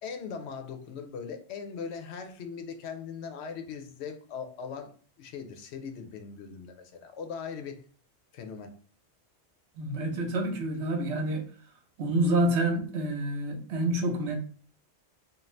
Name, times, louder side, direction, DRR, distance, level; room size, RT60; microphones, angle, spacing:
voice 1, 0.0-4.9 5.2-7.8 8.3-8.7, left 6 dB, 80° left, 0.9 m, -39 dB
voice 2, 9.8-11.4 12.0-14.3, right 1 dB, 85° right, 1.0 m, -28 dB
2.6 x 2.4 x 3.1 m
omnidirectional pair, 1.1 m